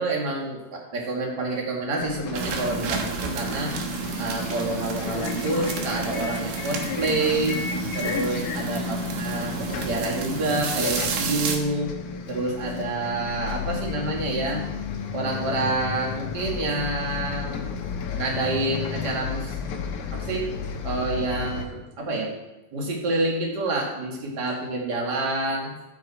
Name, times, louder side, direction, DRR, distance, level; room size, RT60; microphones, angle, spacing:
voice 1, 0.0-3.7 4.2-7.6 7.9-11.9 12.3-14.6 15.1-17.7 18.1-19.6 20.1-20.5 20.8-22.3 22.7-25.7, right 2 dB, 40° right, -1 dB, 1.5 m, -28 dB
Bus, 2.0-21.7, left 6 dB, 85° left, 1.7 m, -33 dB
sound 1, 2.3-11.6, right 5 dB, 70° right, 2.3 m, -31 dB
14.5 x 6.4 x 4.2 m, 1.0 s
omnidirectional pair, 4.8 m